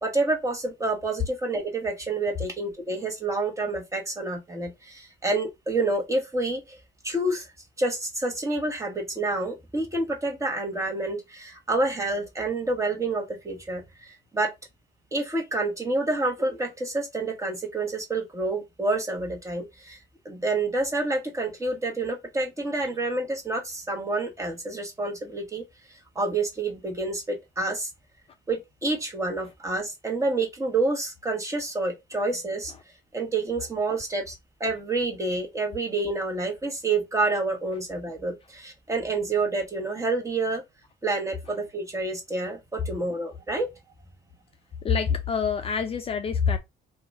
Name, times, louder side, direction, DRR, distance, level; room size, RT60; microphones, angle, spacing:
voice 1, 0.0-6.8 7.0-7.5 7.8-14.5 15.1-20.0 20.2-25.6 26.1-27.9 28.5-32.7 33.1-34.3 34.6-40.6 41.0-43.7, right 2 dB, 20° right, 1.2 m, -28 dB
voice 2, 44.8-46.6, left 6 dB, 35° left, 0.4 m, -25 dB
2.8 x 2.4 x 4.1 m
cardioid pair, 110°, 17 cm